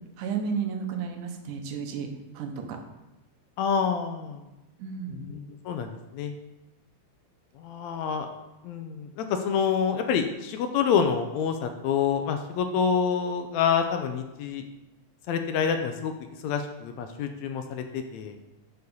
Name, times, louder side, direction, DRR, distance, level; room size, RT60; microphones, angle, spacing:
voice 1, 0.2-2.1 2.3-2.8 4.8-5.3, right 6 dB, 90° right, 4 dB, 2.5 m, -32 dB
voice 2, 3.6-4.4 5.1-6.3 7.6-8.3 8.6-14.6 15.3-16.1 16.4-18.3, left 7 dB, 80° left, 6 dB, 1.8 m, -27 dB
6.9 x 6.5 x 5.4 m, 0.98 s
omnidirectional pair, 3.5 m